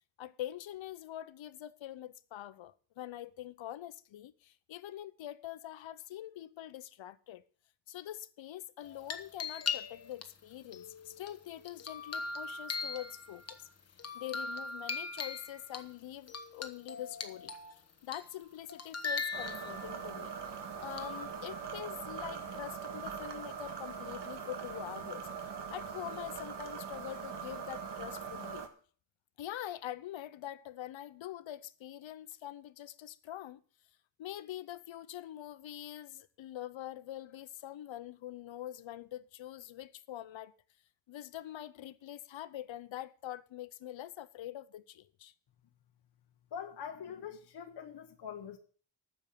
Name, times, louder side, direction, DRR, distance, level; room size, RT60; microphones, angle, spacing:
voice 1, 0.2-7.4 7.9-13.7 14.1-17.5 18.0-20.3 20.8-25.3 25.7-28.7 29.4-33.6 34.2-40.5 41.1-45.3, left 12 dB, 85° left, 0.8 m, -44 dB
sound 1, 8.8-10.2 10.7-13.5 14.0-15.8 16.3-17.7 18.1-18.4 18.7-20.0 21.0-21.3, left 4 dB, 35° left, 1.2 m, -40 dB
sound 2, 19.3-28.7, right 6 dB, 65° right, 1.8 m, -42 dB
voice 2, 46.5-48.6, left 8 dB, 60° left, 1.0 m, -43 dB
9.3 x 7.1 x 8.8 m
wide cardioid pair, 140°, 45 cm